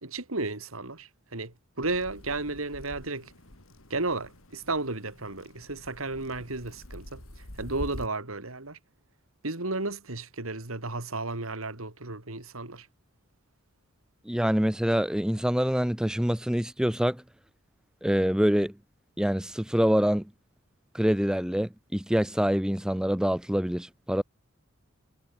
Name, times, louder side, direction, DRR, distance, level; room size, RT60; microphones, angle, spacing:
voice 1, 0.0-3.3 3.9-7.2 7.6-8.8 9.4-12.9, right 3 dB, 90° right, 3.3 m, -33 dB
sound 1, 1.8-8.1, left 1 dB, 80° left, 3.7 m, -46 dB
voice 2, 14.3-17.2 18.0-18.7 19.2-20.2 20.9-24.2, equal, 5° right, 0.5 m, -25 dB
head